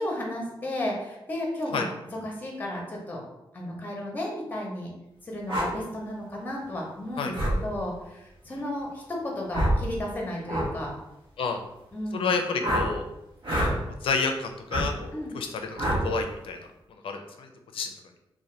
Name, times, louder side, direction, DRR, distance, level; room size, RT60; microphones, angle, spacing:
voice 1, 0.0-1.9 2.1-3.2 3.5-4.9 5.2-7.3 7.6-10.9 11.9-12.3 15.1-15.4, left 1 dB, 20° left, -1 dB, 0.6 m, -33 dB
sound 1, 5.5-5.7 7.3-7.6 9.5-9.8 10.5-10.7 12.6-12.9 13.4-13.7 14.7-14.9 15.8-16.0, equal, 80° right, 0.8 m, -25 dB
voice 2, 12.1-13.0 14.0-16.6 17.0-17.9, left 4 dB, 80° left, 5 dB, 0.4 m, -30 dB
2.7 x 2.1 x 3.1 m, 0.90 s
wide cardioid pair, 155°, 9 cm